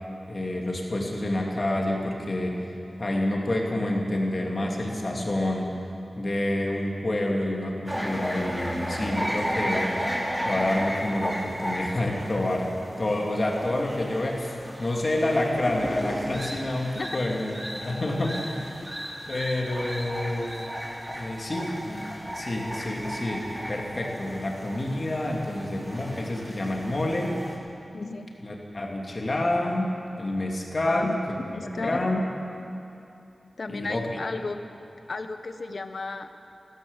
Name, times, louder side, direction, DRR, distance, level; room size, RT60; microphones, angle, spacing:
voice 1, 0.3-2.6 3.0-5.7 6.2-9.9 10.4-12.7 13.0-18.8 19.3-20.7 21.1-27.3 28.4-31.1 31.6-32.2 33.7-34.2, left 1 dB, 45° left, 0 dB, 2.7 m, -28 dB
sound 1, 7.8-27.6, equal, 5° right, 3.8 m, -34 dB
voice 2, 27.9-28.3 30.9-31.1 31.5-32.0 33.6-34.6 35.1-36.3, left 3 dB, 65° left, 8 dB, 1.0 m, -34 dB
14.5 x 13.5 x 7.2 m, 2.8 s
cardioid pair, 50°, 0 cm